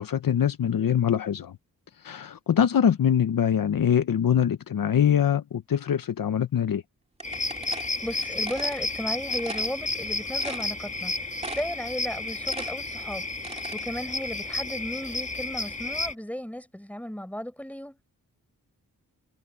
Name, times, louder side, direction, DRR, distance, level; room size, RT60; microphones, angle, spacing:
voice 1, 0.0-1.6 2.0-6.8, left 9 dB, 70° left, 0.9 m, -23 dB
sound 1, 7.2-16.1, left 2 dB, 20° left, 1.8 m, -32 dB
sound 2, 7.2-8.8 9.3-9.7 10.1-10.2 10.4-11.1 11.4-11.8 12.2-13.8, right 2 dB, 20° right, 2.3 m, -38 dB
voice 2, 7.7-11.2 11.5-13.2 13.5-18.0, equal, 5° left, 5.1 m, -35 dB
wide cardioid pair, 85°, 35 cm